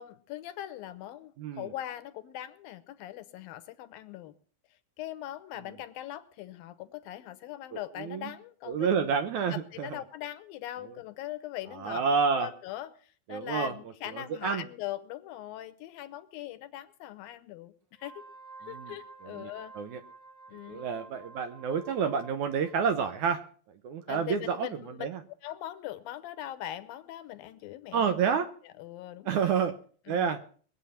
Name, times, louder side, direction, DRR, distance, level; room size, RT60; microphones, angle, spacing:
voice 1, 0.0-4.3 5.0-8.9 9.5-12.0 12.3-17.7 18.0-18.3 18.7-19.7 20.5-20.9 24.1-25.1 25.4-28.1 28.6-29.4 30.1-30.3, left 13 dB, 75° left, 11 dB, 2.6 m, -41 dB
voice 2, 1.4-1.7 7.7-8.3 8.7-9.9 11.8-12.5 13.3-13.7 14.1-14.6 18.6-18.9 19.2-20.0 20.7-23.4 23.8-25.2 27.9-28.5 29.3-29.7 30.1-30.4, right 6 dB, 70° right, 8 dB, 1.9 m, -29 dB
Wind instrument woodwind instrument, 17.9-23.2, right 3 dB, 30° right, 2.1 m, -51 dB
22.0 x 8.2 x 5.7 m, 0.43 s
omnidirectional pair, 4.3 m